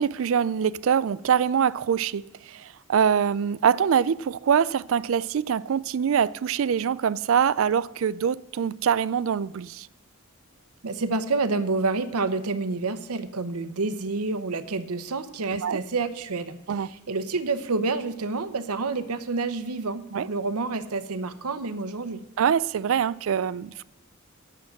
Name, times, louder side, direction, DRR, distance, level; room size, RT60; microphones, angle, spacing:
voice 1, 0.0-9.9 15.5-15.8 16.7-16.9 20.1-20.3 22.4-23.8, right 7 dB, 65° right, 0.3 m, -24 dB
voice 2, 10.8-22.2, right 3 dB, 90° right, 0.9 m, -28 dB
9.7 x 7.4 x 7.6 m
head